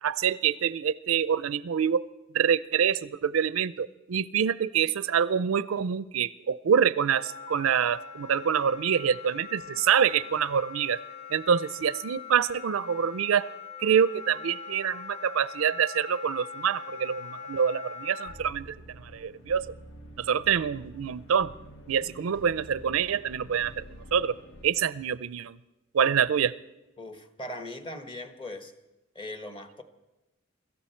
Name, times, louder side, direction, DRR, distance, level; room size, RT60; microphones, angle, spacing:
voice 1, 0.0-2.1 2.3-11.0 11.3-13.5 13.8-19.7 20.2-21.5 21.9-23.8 24.1-24.4 24.6-25.6 25.9-26.5, right 7 dB, 70° right, 17 dB, 0.4 m, -26 dB
Wind instrument woodwind instrument, 7.1-18.4, left 6 dB, 85° left, 1.8 m, -42 dB
sound 1, 18.3-24.7, equal, 65° left, 1.3 m, -48 dB
voice 2, 27.0-28.7 29.1-29.8, left 1 dB, 25° left, 8 dB, 1.1 m, -39 dB
24.0 x 13.5 x 4.4 m, 1.0 s
head